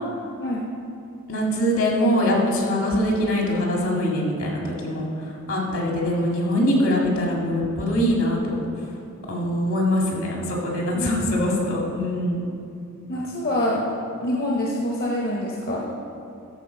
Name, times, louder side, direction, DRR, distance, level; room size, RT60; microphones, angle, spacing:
voice 1, 1.3-5.1 5.5-8.6 9.3-12.4, equal, 70° left, -2 dB, 2.0 m, -23 dB
voice 2, 10.9-11.3 13.1-13.9 14.2-15.9, left 1 dB, 45° left, -3 dB, 0.9 m, -26 dB
13.0 x 4.4 x 5.7 m, 2.6 s
head